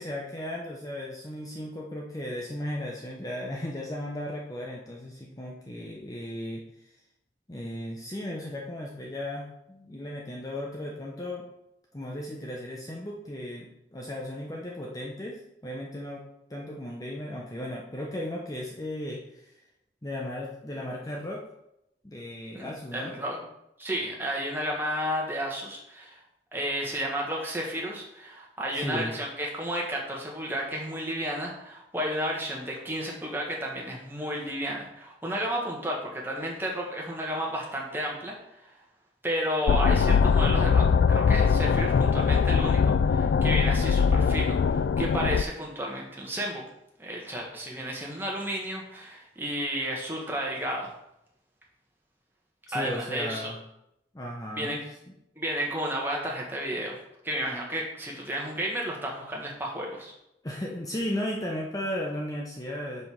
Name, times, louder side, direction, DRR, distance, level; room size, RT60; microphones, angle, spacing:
voice 1, 0.0-6.6 7.5-11.5 11.9-16.2 16.5-19.4 20.0-21.4 22.0-23.1 28.7-29.1 52.7-53.6 54.1-54.8 60.4-63.1, left 1 dB, 20° left, -2 dB, 0.8 m, -35 dB
voice 2, 22.5-23.5 23.8-26.2 26.5-38.3 38.6-38.7 39.2-46.6 47.0-50.9 52.7-53.5 54.5-54.8 55.3-57.0 57.2-60.1, equal, 10° right, -2 dB, 1.6 m, -32 dB
sound 1, 39.7-45.4, left 6 dB, 75° left, 0.3 m, -22 dB
5.4 x 5.4 x 6.2 m, 0.83 s
head